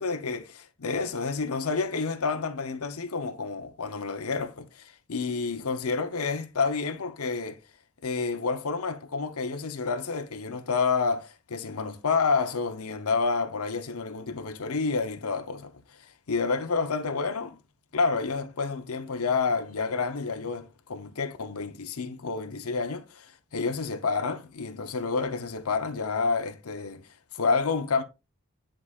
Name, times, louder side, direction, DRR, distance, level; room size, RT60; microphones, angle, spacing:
voice 1, 0.0-7.6 8.0-17.6 17.9-28.0, left 4 dB, 90° left, 0.8 m, -29 dB
9.7 x 5.0 x 2.4 m
head